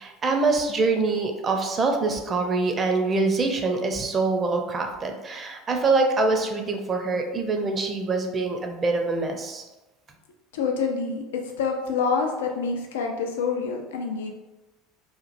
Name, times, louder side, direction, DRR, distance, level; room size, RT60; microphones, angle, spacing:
voice 1, 0.0-9.6, right 3 dB, 35° right, 3 dB, 0.5 m, -24 dB
voice 2, 10.5-14.3, left 5 dB, 80° left, 3 dB, 0.3 m, -27 dB
2.9 x 2.5 x 2.5 m, 1.1 s
hypercardioid pair, 75°, 0 cm